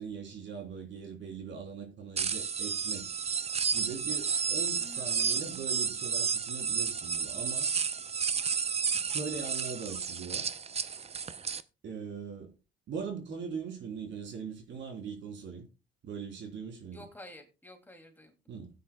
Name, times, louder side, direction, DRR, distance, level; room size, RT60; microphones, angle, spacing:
voice 1, 0.0-3.1 3.7-7.7 8.9-10.5 11.8-12.5 12.9-15.6 16.0-17.1 18.5-18.7, right 6 dB, 65° right, 3.3 m, -41 dB
sound 1, 2.2-11.6, right 6 dB, 30° right, 0.6 m, -32 dB
voice 2, 4.8-5.4 16.9-18.6, left 1 dB, 10° left, 2.6 m, -51 dB
16.0 x 9.3 x 2.3 m
cardioid pair, 90°, 20 cm